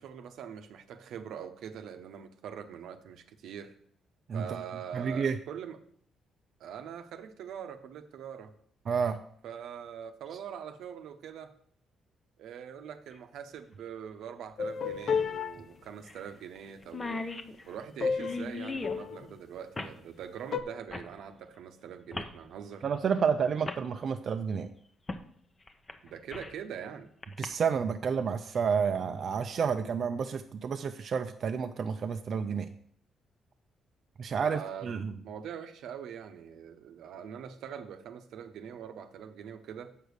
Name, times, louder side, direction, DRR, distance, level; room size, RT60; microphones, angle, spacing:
voice 1, 0.0-3.7 4.3-5.8 6.6-8.5 9.4-11.5 12.4-17.3 17.7-22.8 26.0-27.1 34.4-39.9, right 8 dB, 80° right, 8 dB, 0.9 m, -43 dB
voice 2, 4.9-5.4 8.9-9.2 22.8-24.7 27.4-32.7 34.2-35.1, right 6 dB, 55° right, 6 dB, 0.5 m, -30 dB
sound 1, 13.1-13.2 15.0-15.1 15.4-15.5 16.1-16.3 16.5-16.6 16.8-19.0 19.7-20.0 20.9-21.1 22.1-22.4 23.2-23.3 23.6-23.8 25.1-25.3 25.7-26.6 27.2-27.4, left 3 dB, 30° left, 0.9 m, -38 dB
sound 2, 14.6-15.5 18.0-18.4 18.7-19.3 20.5-20.6, left 5 dB, 55° left, 0.6 m, -30 dB
7.5 x 5.2 x 6.5 m, 0.64 s
cardioid pair, 90°, 0 cm